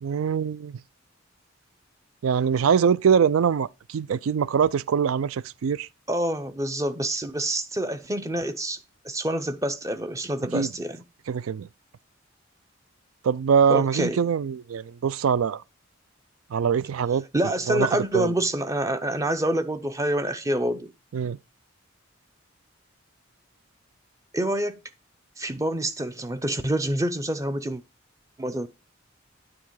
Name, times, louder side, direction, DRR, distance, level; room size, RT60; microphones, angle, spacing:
voice 1, 0.0-0.8 2.2-5.9 10.5-10.7 11.3-11.7 13.2-15.6 16.5-17.2 17.7-18.3 21.1-21.4, right 7 dB, 85° right, 0.4 m, -23 dB
voice 2, 6.1-8.8 9.0-11.0 13.7-14.2 17.3-20.9 24.3-24.8 25.4-27.8 28.4-28.7, right 1 dB, 15° right, 0.6 m, -27 dB
9.6 x 3.7 x 4.6 m
head